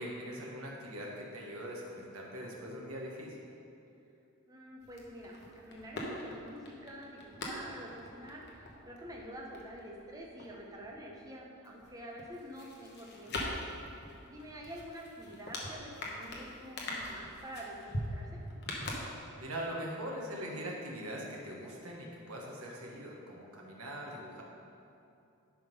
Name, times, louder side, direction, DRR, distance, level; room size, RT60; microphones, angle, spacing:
voice 1, 0.0-3.5 19.4-24.4, equal, 80° right, -2 dB, 1.3 m, -42 dB
voice 2, 4.5-13.5 14.3-18.4, equal, 15° right, -2 dB, 0.9 m, -47 dB
sound 1, 4.8-11.3 11.6-19.6 19.9-20.0, left 1 dB, 50° left, 1.1 m, -43 dB
10.5 x 3.8 x 5.4 m, 2.7 s
head